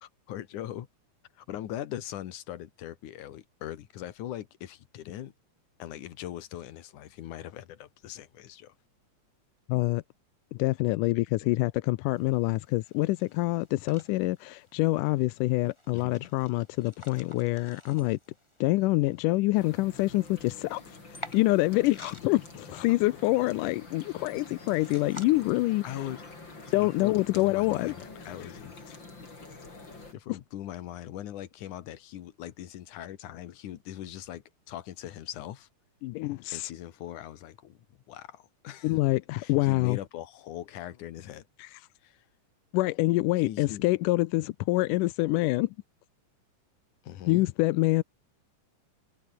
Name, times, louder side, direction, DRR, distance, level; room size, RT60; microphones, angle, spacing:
voice 1, 0.0-0.9 1.4-5.3 5.8-8.7 11.4-11.5 15.9-16.3 22.7-23.0 25.8-26.3 26.8-29.0 30.1-35.7 36.5-37.8 38.1-39.0 39.4-41.5 42.0-42.2 43.4-43.9 47.0-47.4, left 12 dB, 75° left, 2.9 m, -41 dB
voice 2, 9.7-10.0 10.5-18.2 18.6-25.8 26.7-27.9 30.3-30.4 36.0-36.7 38.8-40.0 41.6-41.8 42.7-45.7 47.3-48.0, left 19 dB, 90° left, 2.2 m, -26 dB
sound 1, 12.1-25.3, left 1 dB, 10° left, 6.8 m, -52 dB
sound 2, 19.5-30.1, left 3 dB, 35° left, 5.8 m, -47 dB
omnidirectional pair, 3.7 m